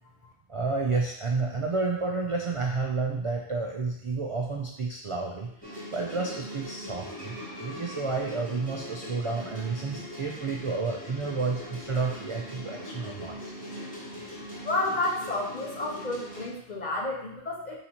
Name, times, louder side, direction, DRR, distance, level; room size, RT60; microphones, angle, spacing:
voice 1, 0.5-5.5 5.9-7.3 7.6-13.5, right 4 dB, 50° right, -1 dB, 0.3 m, -30 dB
sound 1, 5.6-16.5, left 1 dB, 10° left, 1.0 m, -41 dB
voice 2, 14.6-17.8, left 2 dB, 50° left, -1 dB, 0.7 m, -31 dB
3.8 x 2.9 x 4.2 m, 0.72 s
omnidirectional pair, 1.1 m